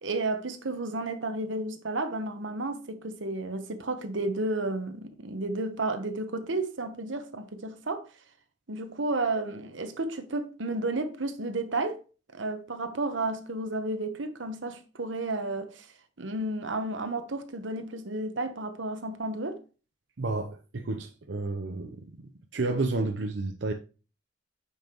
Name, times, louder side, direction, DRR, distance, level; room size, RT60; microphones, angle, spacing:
voice 1, 0.0-8.0 8.7-12.0 12.3-15.9 16.2-19.6, right 2 dB, 90° right, 1.1 m, -32 dB
voice 2, 20.2-22.1 22.5-23.7, right 3 dB, 70° right, 0.7 m, -31 dB
8.9 x 5.7 x 3.0 m
head